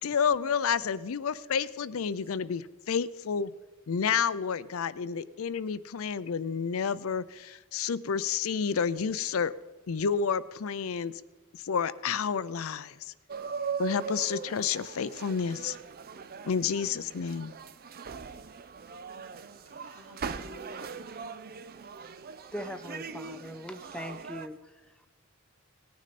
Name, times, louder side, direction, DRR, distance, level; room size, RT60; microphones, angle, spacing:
voice 1, 0.0-3.5 3.9-9.5 9.9-11.1 11.5-13.0 13.8-15.8 16.4-17.5, left 6 dB, 70° left, 16 dB, 0.5 m, -30 dB
sound 1, 13.3-24.5, right 6 dB, 45° right, 0.6 m, -40 dB
voice 2, 18.8-19.1 19.6-21.0 23.1-23.2, left 1 dB, 75° right, -2 dB, 3.4 m, -52 dB
voice 3, 22.5-25.1, equal, 5° left, 9 dB, 0.4 m, -41 dB
18.5 x 9.5 x 4.2 m, 1.2 s
head